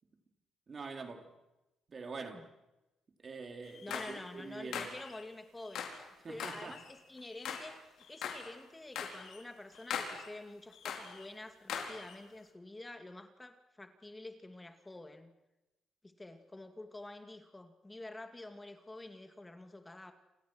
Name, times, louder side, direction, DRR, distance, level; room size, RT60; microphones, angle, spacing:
voice 1, 0.7-1.3 1.9-2.5 3.2-4.9 6.2-6.8, right 4 dB, 40° right, 3.7 m, -45 dB
sound 1, 3.6-4.2 4.7-5.2 5.6-6.0 6.4-7.7 8.0-8.5 8.9-9.4 9.7-10.3 10.7-11.3 11.7-12.1, left 7 dB, 80° left, 4.7 m, -41 dB
voice 2, 3.8-5.9 6.3-15.3 16.0-20.1, left 2 dB, 15° left, 2.3 m, -48 dB
29.0 x 28.5 x 6.4 m
cardioid pair, 90°, 0 cm